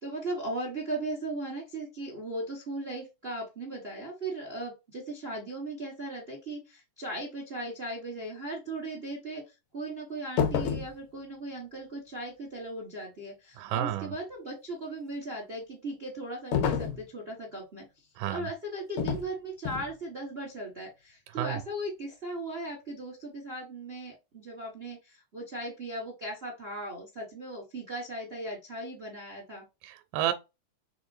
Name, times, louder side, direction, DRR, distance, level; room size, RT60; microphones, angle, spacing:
voice 1, 0.0-29.6, right 1 dB, 55° right, 0.6 m, -38 dB
sound 1, 10.4-10.9 16.5-17.0 19.0-19.3 19.6-19.9, left 7 dB, 70° left, 1.9 m, -28 dB
voice 2, 13.6-14.1 18.2-18.5 21.4-21.6 29.8-30.3, right 12 dB, 85° right, 2.1 m, -30 dB
4.9 x 3.5 x 2.6 m
omnidirectional pair, 3.7 m